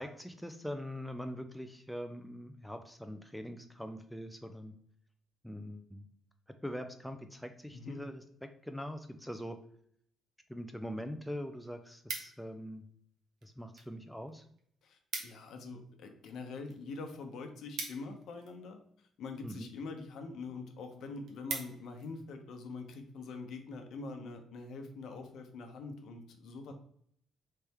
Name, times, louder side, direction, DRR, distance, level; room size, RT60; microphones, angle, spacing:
voice 1, 0.0-4.7 5.4-6.1 6.6-8.2 8.6-9.6 10.5-12.9 13.4-14.5 19.4-19.7, equal, ahead, 6 dB, 0.3 m, -42 dB
sound 1, 11.5-12.7 13.4-13.9 14.2-14.3 14.6-14.7 14.9-15.5 15.9-18.7 19.5-19.8 20.3-20.4 20.7-20.8 21.1-22.1 22.6-22.8, right 4 dB, 65° right, 0.9 m, -43 dB
voice 2, 14.8-26.7, left 3 dB, 65° left, 5 dB, 0.8 m, -44 dB
4.2 x 3.4 x 3.5 m, 0.66 s
cardioid pair, 145°, 0 cm